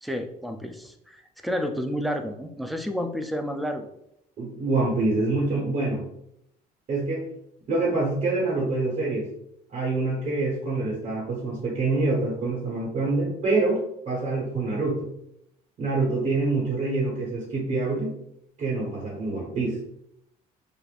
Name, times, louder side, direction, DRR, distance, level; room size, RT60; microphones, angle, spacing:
voice 1, 0.0-3.9, equal, ahead, 6 dB, 0.4 m, -30 dB
voice 2, 4.4-6.0 6.9-7.2 7.7-9.3 9.7-15.1 15.8-18.1 18.6-19.8, right 3 dB, 50° right, -4 dB, 1.3 m, -26 dB
5.0 x 2.5 x 2.4 m, 0.76 s
cardioid pair, 110°, 17 cm